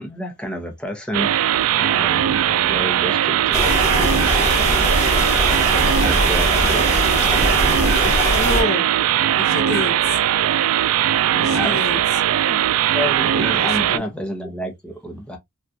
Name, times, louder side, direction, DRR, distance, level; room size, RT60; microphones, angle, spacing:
voice 1, 0.0-3.6 4.0-5.1 6.0-8.2 11.4-11.8 12.5-12.6 12.9-15.4, equal, 5° left, 0.8 m, -31 dB
sound 1, 1.1-14.0, right 11 dB, 80° right, 0.3 m, -19 dB
sound 2, 3.5-8.6, left 1 dB, 30° left, 1.1 m, -21 dB
voice 2, 8.3-8.9 9.2-10.2 11.3-12.0 13.6-14.0, left 2 dB, 45° left, 0.5 m, -27 dB
3.6 x 2.4 x 2.6 m
head